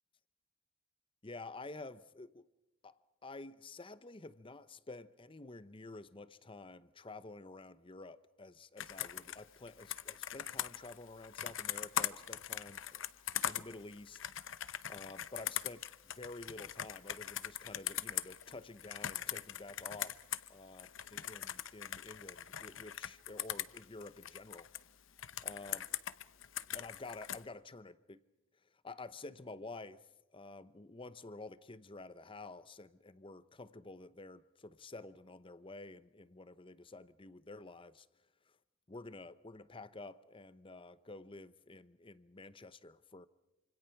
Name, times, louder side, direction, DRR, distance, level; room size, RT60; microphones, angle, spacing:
voice 1, 1.2-2.5 2.8-13.1 13.5-14.2 14.9-20.2 20.5-24.7 25.4-25.9 26.7-28.2 28.6-38.1 38.5-38.6 38.9-43.3, left 2 dB, 25° left, 0.8 m, -50 dB
Computer keyboard, 8.8-20.5 20.8-24.8 25.2-27.4, left 11 dB, 65° left, 0.8 m, -41 dB
27.5 x 26.0 x 5.9 m
head